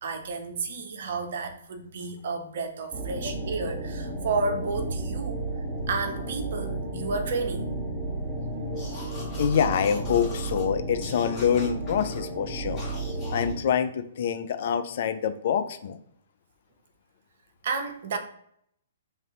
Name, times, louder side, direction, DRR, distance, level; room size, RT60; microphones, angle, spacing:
voice 1, 0.0-5.4 5.9-7.7 17.6-18.2, right 3 dB, 55° right, 5 dB, 0.7 m, -31 dB
sound 1, 2.9-13.5, right 2 dB, 5° right, 1.5 m, -33 dB
sound 2, 8.7-10.7 11.0-12.2 12.8-13.5, left 3 dB, 20° left, 1.4 m, -43 dB
voice 2, 9.3-12.8 13.3-16.0, left 8 dB, 50° left, 9 dB, 0.4 m, -26 dB
3.2 x 2.6 x 3.7 m, 0.68 s
figure-of-eight pair, 120°, 0 cm